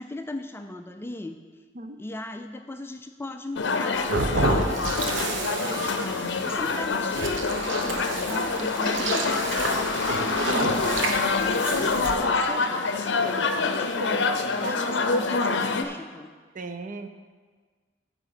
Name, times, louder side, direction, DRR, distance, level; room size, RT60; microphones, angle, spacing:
voice 1, 0.0-1.4 2.0-4.9 5.3-9.8 10.2-13.9 14.6-16.3, left 2 dB, 15° left, 6 dB, 0.3 m, -38 dB
sound 1, 3.6-15.8, left 4 dB, 65° left, 0.6 m, -26 dB
sound 2, 3.9-12.2, right 2 dB, 80° right, 0.9 m, -30 dB
voice 2, 5.3-6.1 6.5-6.6 13.2-13.3 13.8-14.2 14.6-14.8 16.5-17.1, right 3 dB, 45° right, 8 dB, 0.6 m, -37 dB
8.8 x 4.9 x 7.0 m, 1.5 s
head